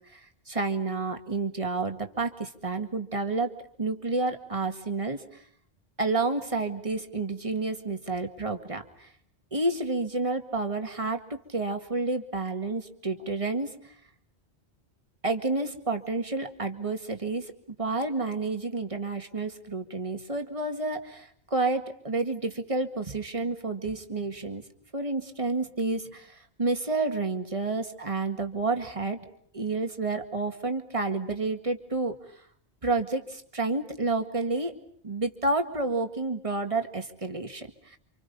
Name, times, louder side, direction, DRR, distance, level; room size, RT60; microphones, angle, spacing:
voice 1, 0.5-3.5 3.8-5.2 6.0-9.1 9.5-13.7 15.2-24.6 24.9-29.2 29.5-32.1 32.8-34.7 35.0-38.0, right 3 dB, 30° right, 6 dB, 2.0 m, -30 dB
30.0 x 26.5 x 5.4 m, 0.63 s
omnidirectional pair, 1.1 m